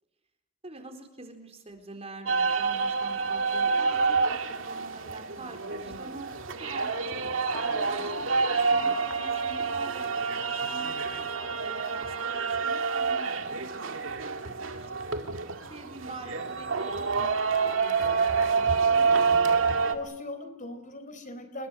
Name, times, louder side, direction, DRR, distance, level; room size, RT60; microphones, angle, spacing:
voice 1, 0.6-6.3 6.6-7.4 7.9-10.1 10.5-11.3 11.6-14.2 14.4-15.2 15.7-19.1, right 2 dB, 30° right, 5 dB, 4.2 m, -46 dB
sound 1, 2.3-20.0, right 5 dB, 70° right, 2.2 m, -28 dB
voice 2, 7.5-7.9 19.8-21.7, left 1 dB, 40° left, 9 dB, 4.3 m, -40 dB
29.0 x 22.0 x 6.4 m, 0.87 s
head